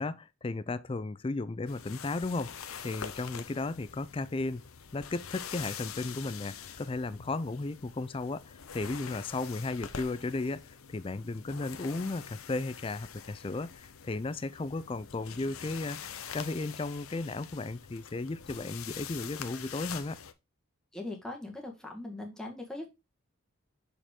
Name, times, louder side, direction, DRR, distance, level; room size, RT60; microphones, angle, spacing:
voice 1, 0.0-4.6 4.9-10.6 10.9-20.2, left 3 dB, 25° left, 0.4 m, -35 dB
sound 1, 1.7-20.3, left 8 dB, 85° left, 0.8 m, -45 dB
voice 2, 20.9-22.9, left 2 dB, 5° left, 1.7 m, -40 dB
6.6 x 5.0 x 3.6 m
head